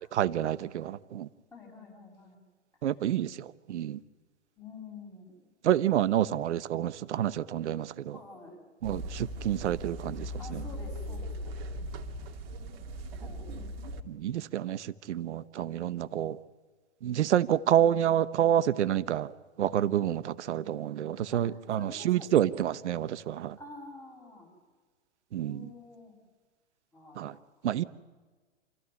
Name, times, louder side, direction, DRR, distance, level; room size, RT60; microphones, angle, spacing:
voice 1, 0.1-1.3 2.8-3.3 3.7-4.0 5.6-8.2 8.8-10.3 10.5-10.6 14.1-14.8 15.1-16.4 17.0-19.3 19.6-23.5 25.3-25.7 27.2-27.3 27.6-27.8, right 11 dB, 70° right, 14 dB, 1.1 m, -28 dB
voice 2, 1.5-2.4 4.6-5.5 6.1-6.4 8.1-8.6 10.4-11.6 13.2-13.5 21.3-22.5 23.6-24.5 25.4-26.1 26.9-27.4, left 3 dB, 10° left, 0 dB, 7.7 m, -48 dB
sound 1, 8.8-14.0, equal, 50° right, 2.6 m, -39 dB
28.0 x 15.0 x 9.7 m, 1.4 s
hypercardioid pair, 125°, 36 cm